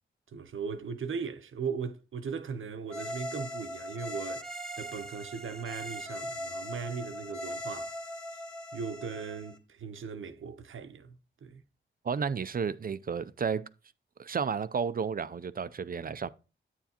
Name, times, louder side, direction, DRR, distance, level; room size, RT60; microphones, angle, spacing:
voice 1, 0.3-4.5 4.8-8.0 8.7-11.6, right 6 dB, 80° right, 0.8 m, -38 dB
sound 1, 2.9-9.6, equal, 5° left, 1.3 m, -40 dB
voice 2, 12.0-13.6 14.2-16.3, right 6 dB, 45° right, 0.5 m, -32 dB
8.8 x 7.1 x 2.9 m
cardioid pair, 60°, 20 cm